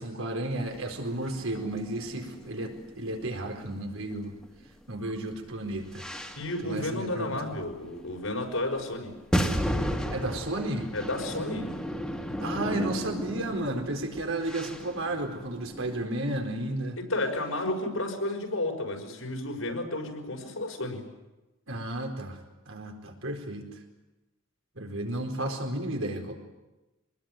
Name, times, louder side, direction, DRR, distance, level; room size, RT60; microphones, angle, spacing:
voice 1, 0.0-4.3 4.9-6.0 6.6-7.6 10.1-10.9 12.4-17.0 21.7-22.4 22.7-23.7 24.8-26.3, right 1 dB, 80° right, 3 dB, 4.4 m, -33 dB
sound 1, 0.6-4.7 5.0-6.7 7.2-7.3 8.1-8.2 9.2-16.1, equal, 5° left, 1.9 m, -34 dB
voice 2, 6.4-9.1 10.9-11.7 17.1-21.0, left 1 dB, 85° left, 2 dB, 5.7 m, -32 dB
25.0 x 20.5 x 9.2 m, 1.1 s
head